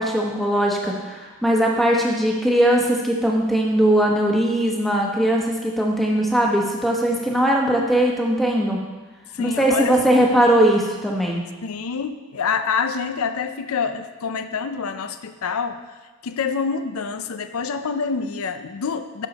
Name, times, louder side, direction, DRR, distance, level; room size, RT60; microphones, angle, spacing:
voice 1, 0.0-8.8 9.4-11.4, right 1 dB, ahead, -1 dB, 1.0 m, -20 dB
voice 2, 9.3-10.3 11.6-15.8 16.2-19.3, left 5 dB, 80° left, 9 dB, 0.5 m, -26 dB
10.5 x 6.4 x 4.0 m, 1.3 s
head